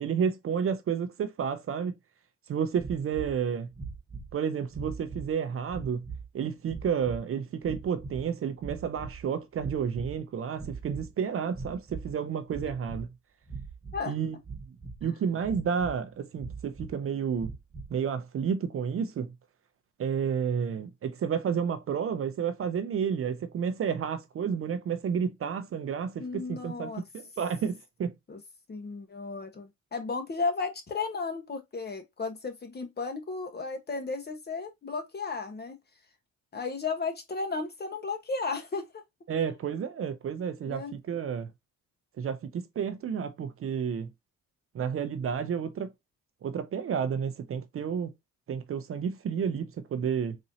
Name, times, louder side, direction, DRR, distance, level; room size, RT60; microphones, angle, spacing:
voice 1, 0.0-1.9 2.5-3.7 4.3-6.1 6.3-13.1 14.1-14.4 15.0-17.5 17.9-19.3 20.0-28.1 39.3-41.5 42.2-44.1 44.7-45.9 46.4-48.1 48.5-50.4, right 7 dB, 45° right, 0.6 m, -31 dB
sound 1, 2.8-3.4 3.7-4.3 4.7-5.3 5.7-6.3 6.6-7.2 7.6-8.3 8.6-9.2 9.5-10.2 10.5-11.1 11.5-12.1 12.5-13.1 13.5-14.0 14.4-15.1 15.4-16.0 16.4-16.9 17.4-17.9, right 4 dB, 20° right, 1.2 m, -41 dB
voice 2, 26.2-27.0 28.3-28.4 28.7-35.8 36.5-38.8 40.7-40.9, left 4 dB, 35° left, 1.1 m, -34 dB
4.1 x 2.7 x 2.7 m
cardioid pair, 90°, 30 cm